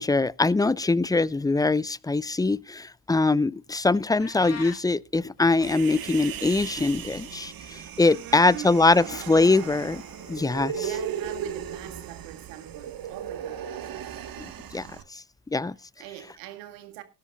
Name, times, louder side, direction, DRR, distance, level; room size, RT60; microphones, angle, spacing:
voice 1, 0.0-10.0 10.3-10.9 14.4-15.2 15.5-15.8, left 3 dB, 10° left, 0.5 m, -23 dB
sound 1, 4.1-14.7, left 8 dB, 85° left, 4.3 m, -55 dB
sound 2, 4.2-4.8, left 5 dB, 35° left, 4.3 m, -39 dB
Human voice, 5.6-15.0, right 9 dB, 55° right, 1.5 m, -37 dB
voice 2, 8.0-9.6 10.7-14.0 15.8-17.0, right 12 dB, 80° right, 1.9 m, -43 dB
19.0 x 11.0 x 2.4 m
hypercardioid pair, 55°, 43 cm